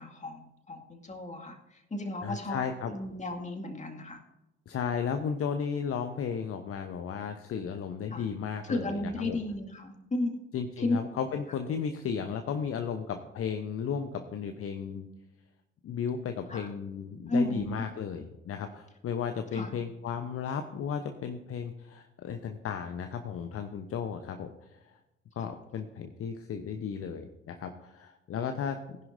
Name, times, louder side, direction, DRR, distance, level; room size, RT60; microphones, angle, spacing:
voice 1, 0.0-1.6 1.9-4.2 8.1-8.2 8.6-10.4 10.8-11.0 16.5-16.7 17.3-17.8 19.5-19.7, left 2 dB, 20° left, 4 dB, 2.2 m, -33 dB
voice 2, 2.2-2.9 4.7-9.4 10.5-15.1 15.8-25.0 25.4-29.0, left 7 dB, 40° left, 7 dB, 0.9 m, -34 dB
18.5 x 11.0 x 2.7 m, 0.96 s
figure-of-eight pair, 50°, 34 cm